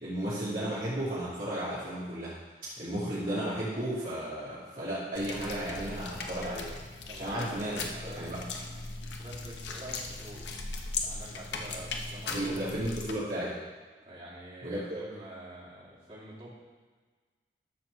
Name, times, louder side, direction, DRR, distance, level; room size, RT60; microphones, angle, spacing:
voice 1, 0.0-2.3 2.8-6.7 7.1-7.7 8.2-8.4 12.3-13.6 14.6-15.0, right 1 dB, 45° right, -10 dB, 2.5 m, -34 dB
sound 1, 5.1-13.1, left 3 dB, 75° left, 1.0 m, -38 dB
voice 2, 7.1-10.5 11.0-12.5 14.0-16.5, right 1 dB, 30° right, -8 dB, 3.1 m, -47 dB
12.5 x 4.5 x 6.6 m, 1.4 s
head